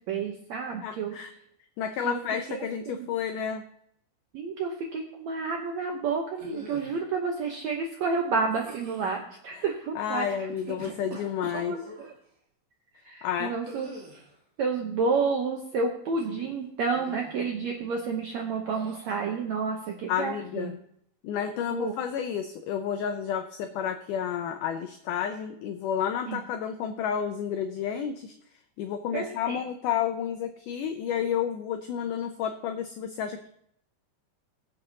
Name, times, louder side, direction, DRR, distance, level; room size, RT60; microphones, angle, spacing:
voice 1, 0.1-1.1 2.0-2.2 2.5-2.6 2.9-3.1 4.3-10.2 11.5-11.8 13.0-13.9 14.6-20.7 21.7-21.9 26.3-26.4 29.1-29.6, right 4 dB, 75° right, 2 dB, 1.6 m, -30 dB
voice 2, 0.8-1.3 1.8-3.6 9.5-9.6 10.0-11.8 13.2-13.6 20.1-20.7 21.2-28.3 28.8-33.5, left 8 dB, 85° left, 7 dB, 1.8 m, -31 dB
sound 1, 6.3-7.0 8.5-9.1 10.4-12.1 13.6-14.4 16.1-16.6 16.9-17.3 18.7-19.2, right 2 dB, 45° right, 1.1 m, -44 dB
20.5 x 7.8 x 2.8 m, 0.70 s
omnidirectional pair, 4.4 m